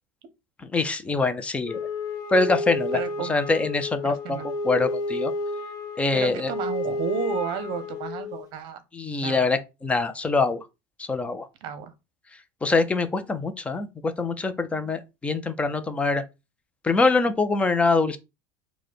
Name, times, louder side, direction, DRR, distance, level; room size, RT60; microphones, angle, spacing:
voice 1, 0.7-1.8 2.3-3.0 3.3-4.4 4.6-5.3 6.0-6.5 8.9-10.6 11.0-11.5 12.6-16.2 16.8-18.2, left 3 dB, 10° left, 0.5 m, -24 dB
Wind instrument woodwind instrument, 1.6-8.4, left 2 dB, 35° left, 0.9 m, -31 dB
voice 2, 2.9-3.3 4.0-4.5 6.1-8.8 9.2-9.5 11.6-11.9 14.7-15.0, right 7 dB, 50° right, 0.9 m, -32 dB
5.0 x 2.2 x 4.3 m
supercardioid pair, 150°, 10 cm